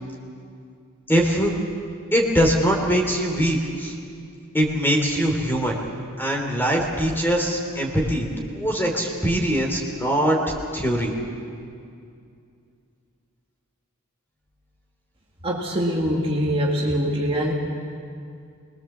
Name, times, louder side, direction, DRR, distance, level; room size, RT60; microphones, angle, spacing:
voice 1, 1.1-1.5 2.1-3.9 4.5-5.8 6.2-10.4 10.7-11.1, equal, 10° left, 1 dB, 3.3 m, -22 dB
voice 2, 15.4-17.5, equal, 25° right, -2 dB, 2.2 m, -23 dB
26.0 x 21.0 x 7.3 m, 2.4 s
head